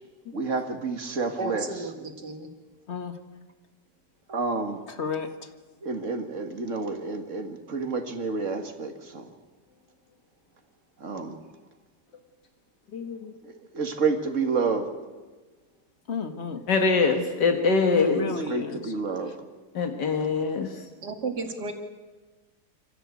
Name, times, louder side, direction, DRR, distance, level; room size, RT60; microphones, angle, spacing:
voice 1, 0.3-1.7 4.3-4.8 5.8-9.3 11.0-11.4 13.4-14.9 18.2-19.4, right 4 dB, 45° right, 6 dB, 2.2 m, -29 dB
voice 2, 1.4-2.5 21.0-21.7, right 3 dB, 75° right, 4 dB, 2.9 m, -33 dB
voice 3, 4.9-5.5 16.1-16.6 17.9-18.9, left 4 dB, 40° left, 8 dB, 1.8 m, -32 dB
voice 4, 12.9-13.3 16.7-18.3 19.8-20.7, left 4 dB, 80° left, 5 dB, 2.1 m, -23 dB
26.0 x 15.0 x 8.4 m, 1.3 s
omnidirectional pair, 1.8 m